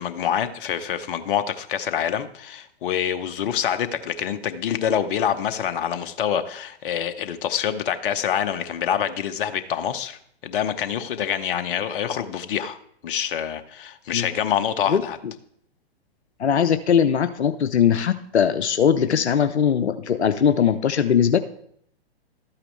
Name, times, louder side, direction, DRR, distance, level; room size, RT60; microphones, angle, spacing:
voice 1, 0.0-12.8 13.0-15.2, left 9 dB, 55° left, 10 dB, 0.8 m, -26 dB
voice 2, 16.4-21.4, left 8 dB, 85° left, 10 dB, 0.6 m, -20 dB
12.5 x 8.7 x 3.3 m, 0.68 s
figure-of-eight pair, 115°, 33 cm